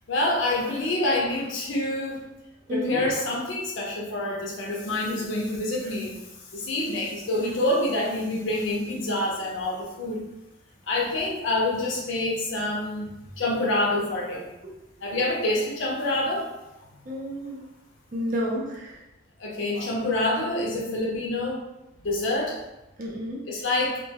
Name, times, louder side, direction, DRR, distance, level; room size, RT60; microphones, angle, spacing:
voice 1, 0.1-2.2 2.7-6.2 6.5-10.2 10.9-13.1 13.4-14.5 15.0-16.5 19.4-21.6 22.0-22.6 23.5-24.0, left 1 dB, 70° left, -2 dB, 0.5 m, -27 dB
voice 2, 2.7-3.0 17.1-17.7 18.1-19.0 23.0-23.4, equal, 40° right, -3 dB, 0.5 m, -30 dB
2.3 x 2.2 x 2.7 m, 0.97 s
head